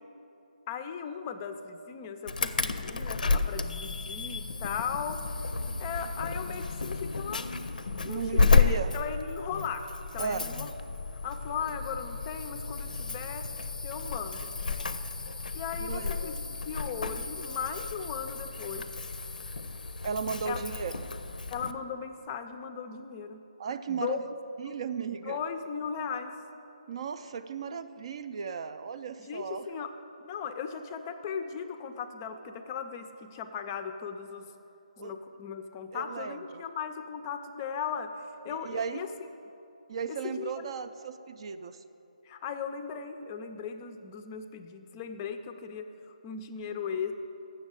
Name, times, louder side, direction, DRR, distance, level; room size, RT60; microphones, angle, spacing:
voice 1, 0.7-5.2 5.8-7.5 8.0-9.9 10.1-10.7 11.2-13.4 13.8-14.5 15.5-16.3 16.7-18.9 20.4-20.6 21.5-23.4 23.9-24.2 24.7-24.8 25.3-26.3 29.2-29.9 30.2-34.5 35.0-39.1 40.1-40.5 42.2-47.1, left 7 dB, 25° left, 8 dB, 0.4 m, -37 dB
Insect / Alarm, 2.3-21.7, left 4 dB, 75° left, 0.5 m, -31 dB
voice 2, 8.0-8.9 10.2-10.5 15.8-16.1 20.0-21.0 23.6-24.2 24.6-25.4 26.9-29.9 35.0-35.2 35.9-36.6 38.5-39.0 39.9-41.8, right 6 dB, 40° right, 10 dB, 0.3 m, -35 dB
7.1 x 6.8 x 8.0 m, 2.9 s
figure-of-eight pair, 155°, 4 cm